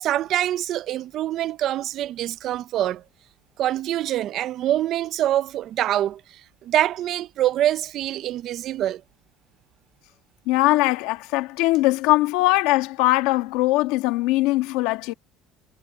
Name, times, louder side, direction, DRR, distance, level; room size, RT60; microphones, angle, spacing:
voice 1, 0.0-3.0 3.6-9.0, right 12 dB, 45° right, 0.4 m, -25 dB
voice 2, 10.5-15.1, left 19 dB, 80° left, 1.3 m, -21 dB
cardioid pair, 170°, 0 cm